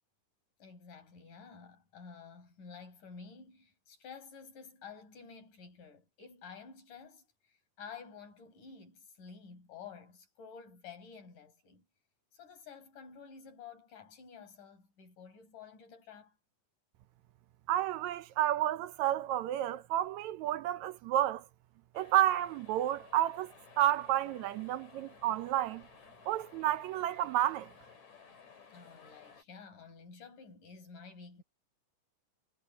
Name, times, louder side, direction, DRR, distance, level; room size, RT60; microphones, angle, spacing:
voice 1, 0.6-11.9 12.3-16.4 28.7-31.4, left 6 dB, 85° left, 6.9 m, -51 dB
voice 2, 17.7-21.4 21.9-25.8 26.3-27.7, right 12 dB, 75° right, 1.9 m, -31 dB
sound 1, 21.9-29.4, left 6 dB, 65° left, 5.7 m, -57 dB
omnidirectional pair, 3.6 m